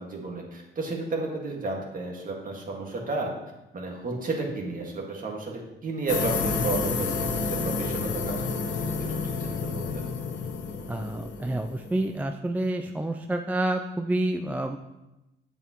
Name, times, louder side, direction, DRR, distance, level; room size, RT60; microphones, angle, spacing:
voice 1, 0.0-3.3 3.7-10.0, right 3 dB, 45° right, 0 dB, 1.8 m, -33 dB
sound 1, 6.1-12.2, left 4 dB, 75° left, 1.0 m, -30 dB
voice 2, 10.9-14.8, right 1 dB, 10° right, 5 dB, 0.3 m, -28 dB
8.4 x 6.9 x 3.0 m, 0.98 s
cardioid pair, 90°, 20 cm